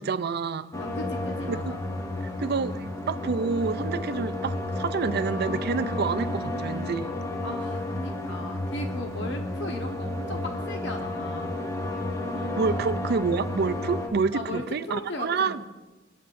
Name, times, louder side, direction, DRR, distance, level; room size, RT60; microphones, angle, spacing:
voice 1, 0.0-0.7 1.5-1.7 2.4-7.1 12.6-15.6, right 5 dB, 55° right, 12 dB, 0.4 m, -28 dB
sound 1, 0.7-14.1, left 1 dB, 15° left, 1.0 m, -32 dB
voice 2, 0.8-1.8 7.4-11.6 12.6-12.8 14.3-15.6, left 1 dB, 65° left, 3 dB, 1.2 m, -37 dB
19.0 x 9.4 x 2.6 m, 1.1 s
head